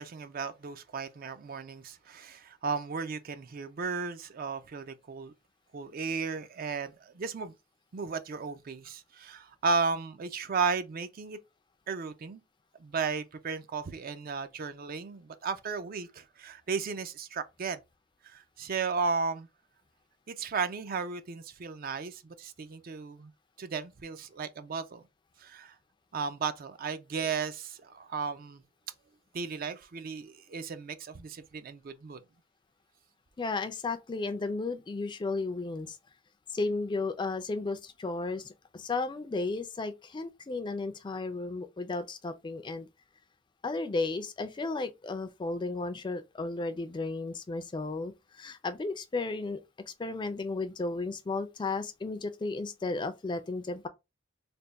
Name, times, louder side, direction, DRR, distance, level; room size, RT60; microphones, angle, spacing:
voice 1, 0.0-5.3 5.7-7.5 7.9-11.4 11.9-12.4 12.8-17.8 18.2-19.5 20.3-23.3 23.6-25.0 25.4-25.7 26.1-28.6 29.3-32.2, right 5 dB, 45° right, 0.4 m, -34 dB
voice 2, 33.4-36.0 36.5-42.9 43.6-49.6 50.0-53.9, left 3 dB, 25° left, 0.4 m, -34 dB
3.4 x 2.2 x 3.9 m
head